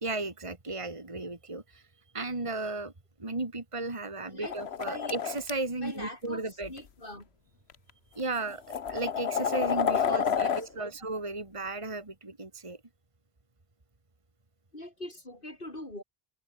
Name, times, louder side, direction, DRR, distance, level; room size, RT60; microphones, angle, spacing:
voice 1, 0.0-1.8 2.1-2.9 3.2-6.7 8.2-12.8, right 2 dB, 30° right, 2.1 m, -35 dB
voice 2, 4.2-5.2 5.8-7.3 10.1-10.9 14.7-16.0, left 1 dB, 55° left, 6.7 m, -43 dB
sound 1, 4.4-5.5 6.6-6.8 7.7-7.8 8.4-10.6, left 7 dB, 90° left, 1.3 m, -29 dB
omnidirectional pair, 1.0 m